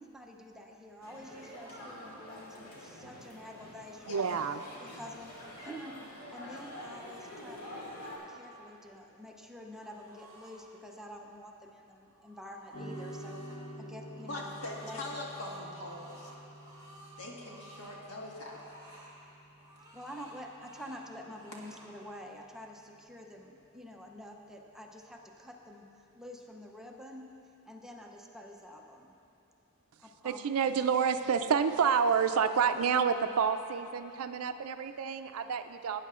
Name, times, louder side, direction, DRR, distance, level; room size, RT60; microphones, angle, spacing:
voice 1, 0.0-4.2 4.8-6.0 6.3-7.9 8.3-13.4 13.8-15.0 19.9-27.3 27.7-29.2 30.0-30.4, equal, ahead, 1 dB, 0.6 m, -48 dB
sound 1, 1.0-8.2, left 1 dB, 90° left, 2.4 m, -47 dB
voice 2, 4.1-4.6 30.2-36.0, right 6 dB, 70° right, 9 dB, 0.4 m, -29 dB
sound 2, 9.8-10.6 12.0-13.6 14.1-18.0 18.3-19.2 19.6-21.0 21.3-21.9, right 1 dB, 15° right, 1.9 m, -55 dB
sound 3, 12.7-21.2, right 1 dB, 40° left, 1.7 m, -49 dB
voice 3, 14.3-16.3 17.2-19.0, left 1 dB, 75° left, -2 dB, 1.6 m, -42 dB
17.5 x 9.2 x 2.4 m, 2.7 s
head